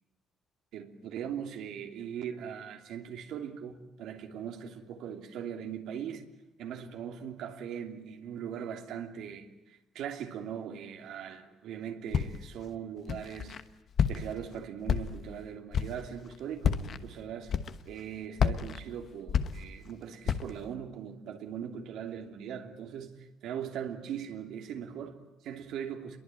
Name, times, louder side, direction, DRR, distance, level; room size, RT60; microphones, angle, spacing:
voice 1, 0.7-6.3 6.6-13.6 14.1-17.5 17.8-26.2, right 8 dB, 65° right, 2.9 m, -40 dB
Walk footsteps, 12.1-12.6 13.1-13.6 14.0-14.5 14.9-15.4 15.7-16.1 16.6-17.0 17.5-18.0 18.4-19.9 20.3-20.6, left 7 dB, 35° left, 1.1 m, -30 dB
29.0 x 22.5 x 9.1 m
cardioid pair, 175°, 0 cm